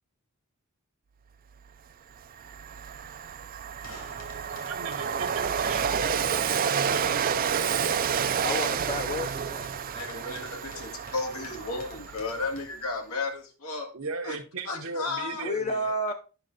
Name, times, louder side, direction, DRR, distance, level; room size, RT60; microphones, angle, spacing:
Train, 1.7-1.8 2.2-12.6, right 7 dB, 40° right, 0.4 m, -30 dB
sound 1, 3.8-12.6, left 1 dB, 65° left, 2.7 m, -50 dB
voice 1, 4.6-8.1 13.9-16.1, right 3 dB, 65° right, 0.9 m, -37 dB
voice 2, 8.4-9.7 15.4-16.1, left 1 dB, 30° left, 0.6 m, -31 dB
voice 3, 9.9-13.9 14.2-14.4 14.7-15.5, left 3 dB, 85° left, 1.8 m, -34 dB
9.0 x 5.9 x 4.0 m
head